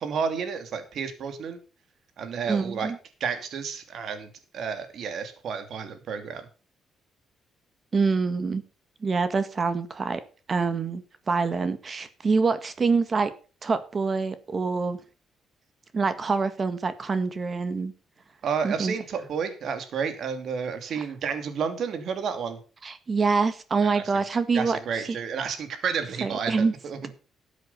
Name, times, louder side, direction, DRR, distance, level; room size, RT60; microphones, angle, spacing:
voice 1, 0.0-1.6 2.2-2.9 3.2-6.5 18.4-22.6 23.8-24.2 24.5-27.1, right 6 dB, 65° right, 2.9 m, -31 dB
voice 2, 2.5-3.0 7.9-8.6 9.0-10.2 10.5-13.3 13.6-15.0 15.9-17.9 18.6-18.9 22.8-24.8 26.2-26.7, right 4 dB, 35° right, 1.7 m, -25 dB
13.0 x 8.2 x 5.8 m
cardioid pair, 90°, 0 cm